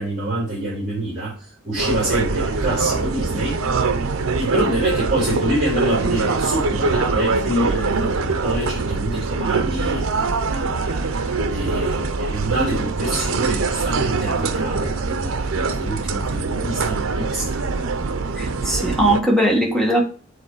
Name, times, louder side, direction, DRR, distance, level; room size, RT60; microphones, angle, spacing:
voice 1, 0.0-1.3 1.6-3.6 4.4-17.6, right 1 dB, 35° right, 3.8 m, -26 dB
sound 1, 1.8-19.2, right 4 dB, 75° right, 0.7 m, -23 dB
voice 2, 18.4-20.0, right 1 dB, ahead, 1.6 m, -19 dB
8.0 x 3.9 x 4.8 m
head